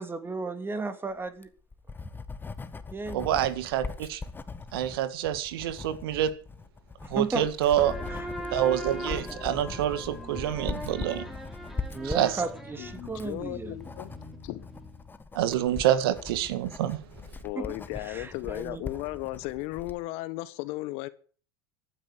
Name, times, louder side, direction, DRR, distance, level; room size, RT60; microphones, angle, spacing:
voice 1, 0.0-1.5 2.9-3.4 7.0-7.5 8.1-8.3 11.9-13.8 17.5-17.7 18.0-18.8, right 3 dB, 15° right, 2.7 m, -34 dB
Writing, 1.3-20.0, left 4 dB, 15° left, 1.4 m, -41 dB
voice 2, 3.1-4.2 4.7-6.3 7.1-7.9 8.5-11.2 12.0-12.3 15.3-17.0, right 11 dB, 75° right, 1.8 m, -27 dB
sound 1, 7.8-15.1, left 1 dB, ahead, 3.6 m, -39 dB
voice 3, 12.8-14.1 14.4-14.7 17.4-21.1, left 19 dB, 60° left, 1.3 m, -35 dB
14.5 x 9.5 x 8.4 m
hypercardioid pair, 90°, 12 cm